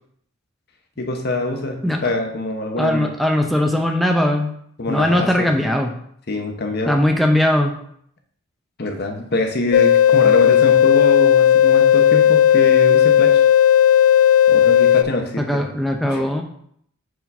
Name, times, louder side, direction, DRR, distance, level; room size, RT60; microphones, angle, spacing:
voice 1, 1.0-3.1 4.8-5.5 6.3-7.0 8.8-13.4 14.5-15.6 16.0-16.2, left 1 dB, 50° left, 4 dB, 0.9 m, -24 dB
voice 2, 2.8-4.5 4.9-5.9 6.9-7.8 15.4-16.4, left 1 dB, ahead, 2 dB, 0.6 m, -19 dB
sound 1, 9.7-15.0, left 10 dB, 85° left, 0.3 m, -13 dB
4.7 x 3.9 x 5.4 m, 0.68 s
head